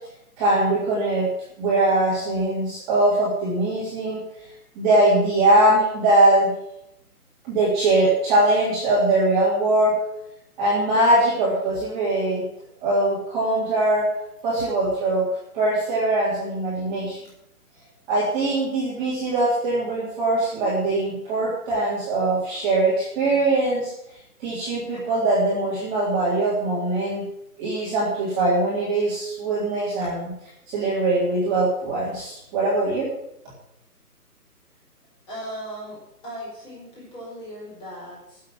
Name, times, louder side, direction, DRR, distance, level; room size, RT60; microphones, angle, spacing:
voice 1, 0.4-1.3 1.6-4.2 4.7-6.5 7.4-9.9 10.6-12.4 12.8-14.1 14.4-15.2 15.5-17.2 18.1-23.9 24.4-27.2 27.6-30.3 30.7-33.1, right 2 dB, 15° right, -8 dB, 3.3 m, -21 dB
voice 2, 35.3-38.4, equal, 10° left, -6 dB, 4.5 m, -37 dB
11.5 x 7.7 x 8.9 m, 0.81 s
hypercardioid pair, 160°, 47 cm